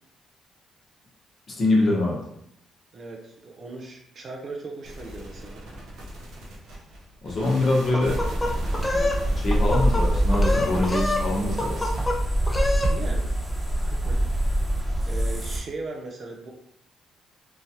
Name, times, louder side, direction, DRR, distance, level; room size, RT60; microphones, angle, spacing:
voice 1, 1.5-2.2 7.2-8.2 9.4-11.9, left 2 dB, 45° left, -3 dB, 0.9 m, -24 dB
voice 2, 2.9-5.6 12.9-13.3 13.9-14.5 15.0-16.5, right 3 dB, 50° right, 1 dB, 0.5 m, -38 dB
sound 1, 4.8-12.0, equal, 85° right, 0.8 m, -40 dB
sound 2, 7.9-9.2 9.5-10.0 10.3-11.3 11.6-12.2 12.5-12.9, left 2 dB, 15° left, 0.6 m, -26 dB
sound 3, 8.0-15.6, equal, 20° right, 1.0 m, -25 dB
3.1 x 2.2 x 2.8 m, 0.75 s
cardioid pair, 90°, 0 cm